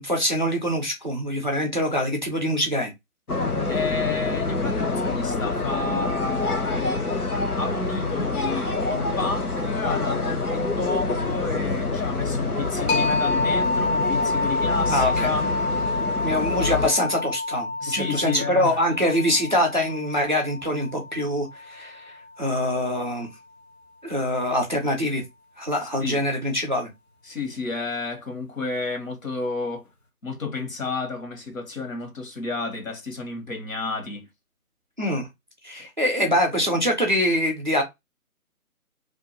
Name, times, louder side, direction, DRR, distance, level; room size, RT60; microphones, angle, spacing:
voice 1, 0.0-2.9 14.9-15.3 16.2-23.3 24.0-25.2 25.6-26.9 35.0-35.3 35.6-37.8, left 1 dB, 35° right, 0.5 m, -24 dB
sound 1, 3.3-16.9, left 3 dB, 85° left, 0.8 m, -26 dB
voice 2, 3.7-7.0 7.6-15.5 17.8-18.8 26.0-26.2 27.2-29.9 30.2-34.3, left 4 dB, 60° left, 1.2 m, -31 dB
sound 2, 12.9-22.3, left 2 dB, 45° left, 0.7 m, -28 dB
2.5 x 2.1 x 2.8 m
figure-of-eight pair, 145°, 44 cm